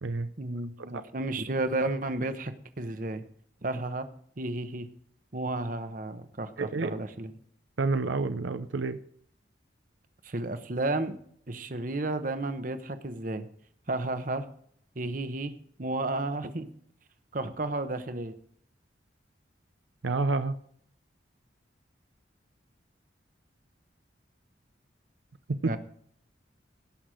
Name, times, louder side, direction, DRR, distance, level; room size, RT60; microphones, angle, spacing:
voice 1, 0.4-3.2 3.6-4.1 4.4-4.9 5.3-7.3 10.2-11.2 11.5-13.5 13.9-14.5 14.9-15.5 15.8-16.7 17.3-18.3 25.6-25.8, right 2 dB, 45° right, 10 dB, 1.0 m, -32 dB
voice 2, 6.6-7.0 7.8-9.0 20.0-20.6 25.6-25.7, right 3 dB, 85° right, 11 dB, 0.6 m, -29 dB
17.5 x 6.1 x 5.0 m, 0.63 s
head